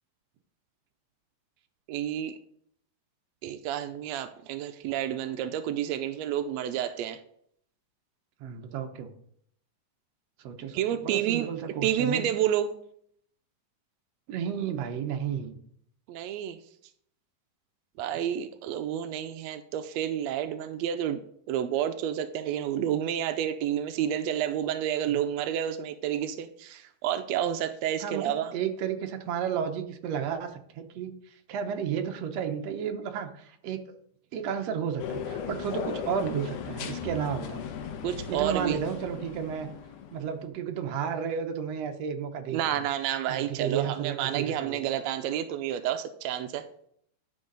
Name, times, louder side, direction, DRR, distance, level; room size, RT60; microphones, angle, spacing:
voice 1, 1.9-2.3 3.4-7.2 10.7-11.5 11.8-12.7 16.1-16.6 18.0-21.2 21.5-28.5 38.0-38.8 42.5-46.7, right 10 dB, 85° right, 1.5 m, -30 dB
voice 2, 8.4-9.1 10.4-10.8 11.0-12.3 14.3-15.6 28.0-31.2 31.5-33.8 34.3-37.7 38.3-39.7 40.1-42.9 43.3-44.9, right 8 dB, 65° right, 1.8 m, -32 dB
sound 1, 35.0-40.4, left 7 dB, 80° left, 2.4 m, -37 dB
11.5 x 6.2 x 3.9 m
omnidirectional pair, 3.6 m